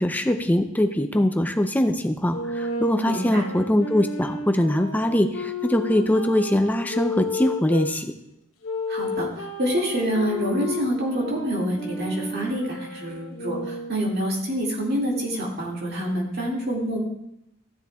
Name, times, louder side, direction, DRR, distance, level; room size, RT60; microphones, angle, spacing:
voice 1, 0.0-8.1, left 1 dB, 10° left, 6 dB, 0.5 m, -22 dB
sound 1, 2.3-7.9 8.6-14.1, left 2 dB, 85° left, 1.0 m, -32 dB
voice 2, 3.0-3.4 8.9-17.0, equal, 50° right, -2 dB, 2.1 m, -27 dB
14.0 x 7.1 x 2.3 m, 0.83 s
head